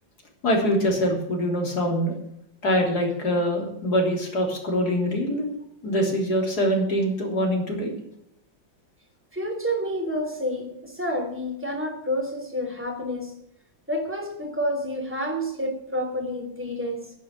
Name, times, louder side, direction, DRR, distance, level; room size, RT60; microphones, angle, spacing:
voice 1, 0.4-2.1 2.6-5.5 5.8-8.0, equal, 60° left, 1 dB, 3.9 m, -24 dB
voice 2, 9.3-13.4 13.9-17.1, equal, 5° right, 4 dB, 3.1 m, -29 dB
11.0 x 9.5 x 8.7 m, 0.78 s
omnidirectional pair, 2.0 m